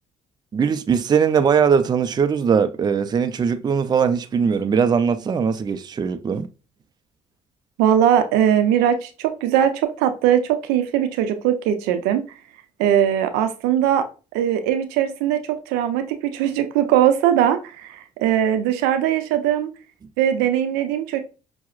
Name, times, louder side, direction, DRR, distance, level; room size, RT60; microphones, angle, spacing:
voice 1, 0.5-6.5, right 6 dB, 25° right, 0.4 m, -20 dB
voice 2, 7.8-12.2 12.8-14.0 14.3-19.7 20.2-21.2, right 10 dB, 80° right, 0.5 m, -20 dB
5.6 x 2.0 x 2.4 m
supercardioid pair, 65°, 16 cm